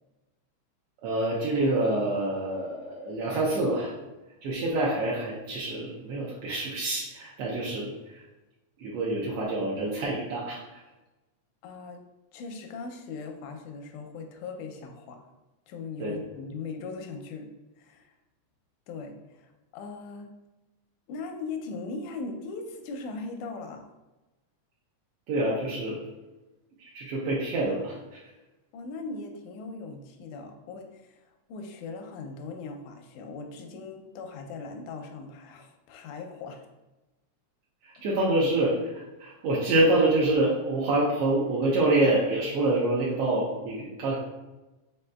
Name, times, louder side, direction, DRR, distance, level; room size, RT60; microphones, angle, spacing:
voice 1, 1.0-3.9 4.4-8.2 8.8-10.6 16.0-16.1 25.3-26.0 26.8-28.2 37.8-44.2, right 2 dB, 75° right, -5 dB, 1.4 m, -26 dB
voice 2, 11.6-12.1 12.3-15.3 15.7-17.5 17.8-18.1 18.9-20.3 21.1-23.9 28.7-36.7 38.0-38.1, left 4 dB, 85° left, 4 dB, 2.0 m, -39 dB
5.2 x 3.8 x 2.2 m, 1.1 s
omnidirectional pair, 3.4 m